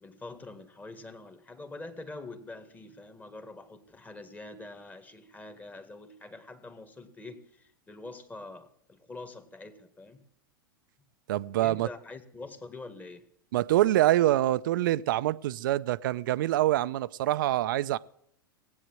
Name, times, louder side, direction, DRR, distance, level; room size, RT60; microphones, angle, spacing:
voice 1, 0.0-10.2 11.6-13.3, left 2 dB, 15° left, 1.9 m, -45 dB
voice 2, 11.3-11.9 13.5-18.0, right 14 dB, 65° right, 0.6 m, -25 dB
17.5 x 8.7 x 7.7 m
hypercardioid pair, 105°, 12 cm